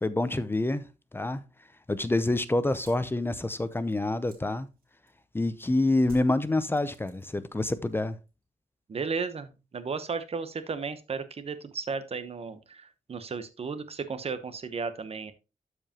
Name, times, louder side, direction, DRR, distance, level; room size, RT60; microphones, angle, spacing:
voice 1, 0.0-0.9 1.1-1.4 1.9-4.7 5.3-8.2, left 2 dB, 15° left, 0.6 m, -27 dB
sound 1, 2.8-5.4 6.0-7.6 7.8-8.4, right 2 dB, 90° right, 2.7 m, -54 dB
voice 2, 8.9-15.3, right 5 dB, 45° right, 0.9 m, -34 dB
12.5 x 4.8 x 2.9 m
wide cardioid pair, 120°, 15 cm